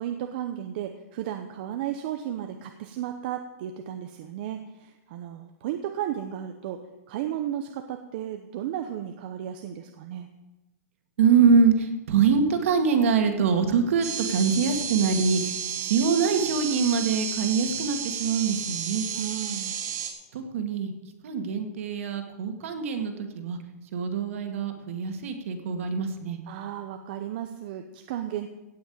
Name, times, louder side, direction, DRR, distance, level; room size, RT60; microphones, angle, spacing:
voice 1, 0.0-6.8 7.1-10.3 19.1-19.8 26.5-28.5, right 10 dB, 35° right, 6 dB, 0.8 m, -34 dB
voice 2, 11.2-15.6 15.8-19.1 20.3-20.9 21.2-23.6 23.9-26.4, right 5 dB, 50° right, 6 dB, 2.1 m, -24 dB
sound 1, 14.0-20.1, right 7 dB, 80° right, 3.3 m, -32 dB
16.5 x 6.1 x 8.7 m, 1.0 s
supercardioid pair, 175°, 9 cm